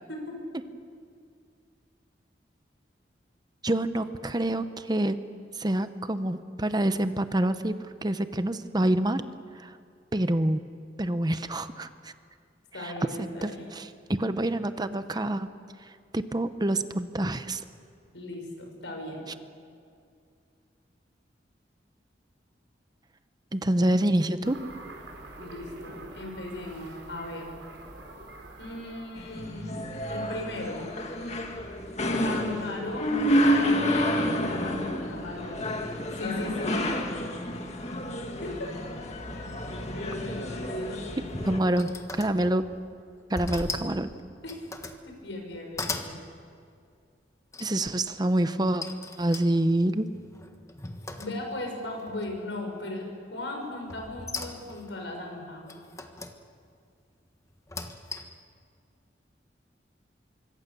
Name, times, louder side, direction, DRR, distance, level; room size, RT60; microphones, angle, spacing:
voice 1, 3.6-5.2 5.5-9.2 9.5-9.8 10.1-10.6 11.0-12.1 12.8-12.9 13.2-15.5 15.8-17.6 23.5-24.6 41.4-42.7 43.3-44.1 47.6-48.8 49.2-50.1, right 1 dB, 20° right, 11 dB, 0.8 m, -27 dB
voice 2, 12.7-13.6 18.1-19.3 25.4-27.5 28.6-29.8 30.1-30.9 32.2-35.6 36.1-36.8 38.4-38.7 39.4-39.5 39.9-41.2 44.4-44.6 45.0-46.2 51.2-55.7, left 2 dB, 90° left, 2 dB, 6.2 m, -37 dB
sound 1, 24.4-29.6, right 1 dB, 85° right, 4.4 m, -45 dB
sound 2, 29.2-41.6, equal, 40° left, 2.1 m, -29 dB
sound 3, 40.9-42.8 43.4-44.0 44.4-45.0 45.5-46.2 47.5-48.0 48.8-51.7 52.1-52.6 53.9-54.9 55.7-56.4 57.5-58.4, left 2 dB, 15° left, 1.4 m, -38 dB
25.5 x 24.0 x 6.9 m, 2.3 s
head